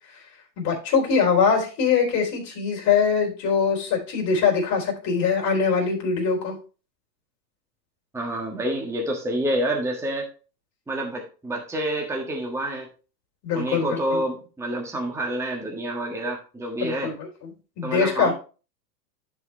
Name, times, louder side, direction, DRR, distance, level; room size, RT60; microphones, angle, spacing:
voice 1, 0.6-6.5 13.4-14.2 16.8-17.5 17.8-18.3, left 6 dB, 35° left, 0 dB, 3.7 m, -23 dB
voice 2, 8.1-10.3 10.9-12.9 13.5-17.1 17.8-18.3, right 1 dB, 5° right, 0 dB, 1.4 m, -28 dB
11.0 x 4.8 x 3.3 m, 0.35 s
hypercardioid pair, 125°, 50 cm